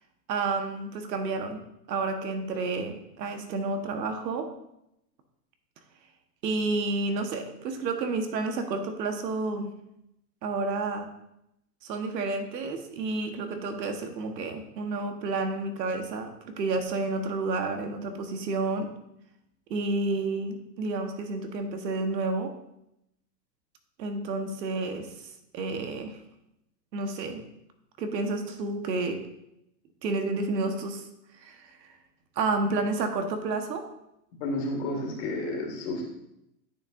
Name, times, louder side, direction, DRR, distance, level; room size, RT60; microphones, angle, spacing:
voice 1, 0.3-1.6 1.9-4.5 6.4-9.7 10.4-11.1 11.8-18.9 19.7-22.5 24.0-25.1 25.5-26.2 26.9-27.4 28.0-29.2 30.0-31.0 31.4-31.7 32.4-33.8, right 3 dB, 80° right, 6 dB, 1.4 m, -30 dB
voice 2, 34.4-36.0, left 2 dB, 40° left, 0 dB, 2.1 m, -31 dB
10.5 x 6.9 x 2.6 m, 0.82 s
supercardioid pair, 165°, 49 cm